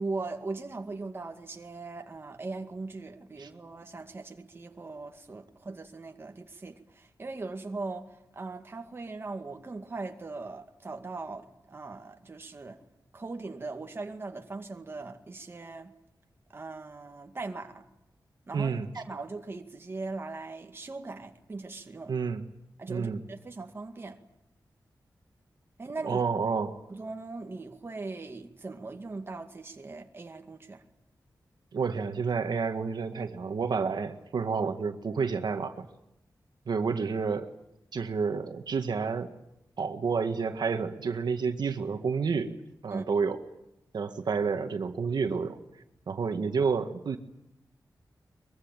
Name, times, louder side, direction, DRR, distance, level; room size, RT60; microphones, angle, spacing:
voice 1, 0.0-12.8 13.1-15.9 16.5-17.9 18.5-22.1 22.8-24.2 25.8-26.2 26.9-30.8 42.9-43.1, right 3 dB, 30° right, 2.1 m, -39 dB
voice 2, 18.5-18.9 22.1-22.4 22.9-23.2 26.1-26.8 31.7-35.9 36.7-37.5 37.9-39.3 39.8-42.5 42.8-43.4 43.9-45.6 46.1-47.2, right 5 dB, 75° right, 1.8 m, -29 dB
23.5 x 22.5 x 9.0 m
wide cardioid pair, 160°, 7 cm